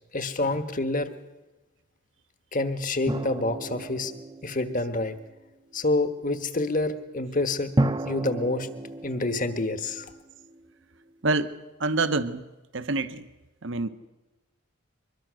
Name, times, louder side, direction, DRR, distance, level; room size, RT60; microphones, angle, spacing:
voice 1, 0.1-1.1 2.5-4.1 4.4-5.1 5.7-7.7 8.0-8.7 9.0-10.1, left 2 dB, 40° left, 1.3 m, -27 dB
sound 1, 3.1-5.4 7.8-10.7, right 1 dB, 20° right, 0.7 m, -32 dB
voice 2, 11.2-12.4 12.7-13.3 13.6-13.9, right 3 dB, 60° right, 1.0 m, -27 dB
24.0 x 21.5 x 6.4 m
head